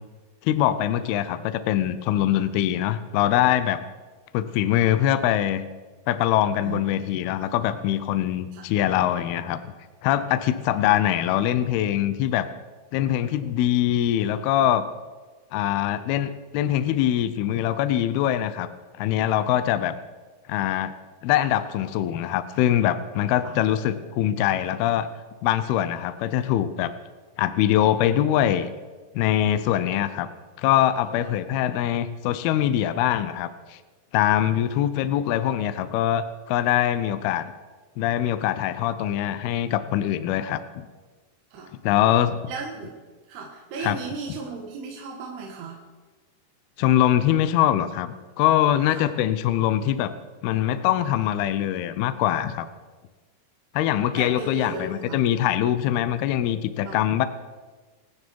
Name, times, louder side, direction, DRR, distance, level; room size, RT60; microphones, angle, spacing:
voice 1, 0.4-3.8 4.3-5.6 6.1-9.6 10.0-12.5 12.9-14.9 15.5-18.7 19.0-19.9 20.5-20.9 21.2-25.1 25.4-26.9 27.4-28.7 29.1-30.3 30.6-33.8 34.1-37.5 38.0-40.9 41.8-42.4 43.8-44.0 46.8-50.1 50.4-52.7 53.7-57.3, left 11 dB, 90° left, 12 dB, 2.2 m, -23 dB
voice 2, 42.5-42.9 43.3-45.8 48.9-49.1 54.2-55.2 56.8-57.0, right 4 dB, 65° right, 0 dB, 3.4 m, -35 dB
26.0 x 9.8 x 4.6 m, 1.3 s
omnidirectional pair, 5.5 m